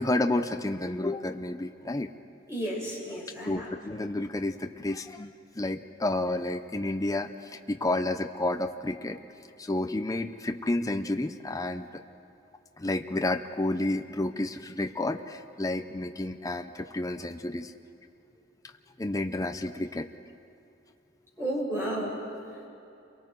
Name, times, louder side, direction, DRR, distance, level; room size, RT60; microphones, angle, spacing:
voice 1, 0.0-2.1 3.1-9.2 9.6-12.0 12.8-17.7 19.0-20.1, left 2 dB, 20° left, 6 dB, 0.6 m, -30 dB
voice 2, 2.5-3.7 21.4-22.1, right 1 dB, 15° right, -5 dB, 6.7 m, -32 dB
30.0 x 23.0 x 4.6 m, 2.8 s
head